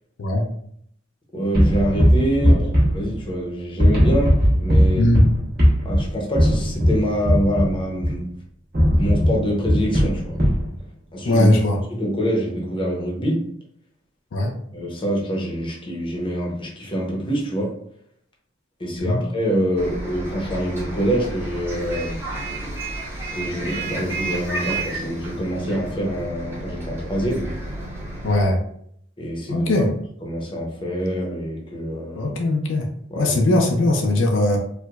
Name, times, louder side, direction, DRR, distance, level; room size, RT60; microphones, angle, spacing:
voice 1, 1.3-5.1 5.8-8.2 8.9-10.4 11.1-11.5 11.9-13.4 14.7-17.7 18.8-22.2 23.3-27.5 29.2-29.7 30.2-32.3 33.1-33.4, equal, 25° left, -1 dB, 0.7 m, -25 dB
sound 1, 1.5-3.5 3.8-8.3 8.7-10.7, equal, 55° right, 1.2 m, -18 dB
voice 2, 11.2-11.8 14.3-14.5 19.0-19.2 28.2-28.6 29.5-29.9 32.2-32.9 33.2-34.6, left 1 dB, 75° left, 2 dB, 0.5 m, -19 dB
Bus, 19.8-28.5, right 2 dB, 10° right, 0.7 m, -31 dB
4.6 x 2.1 x 2.3 m, 0.68 s
head